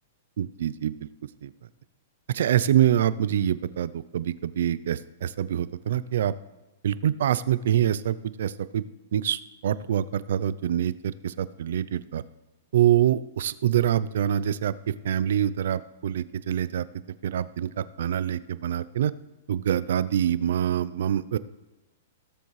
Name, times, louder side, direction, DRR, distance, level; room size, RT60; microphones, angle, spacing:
voice 1, 0.4-1.0 1.4-1.5 2.3-6.3 6.8-8.8 9.1-12.2 12.7-16.9 17.2-19.1 19.5-21.4, right 10 dB, 70° right, 16 dB, 0.5 m, -25 dB
17.0 x 7.0 x 3.2 m, 1.1 s
hypercardioid pair, 140°, 0 cm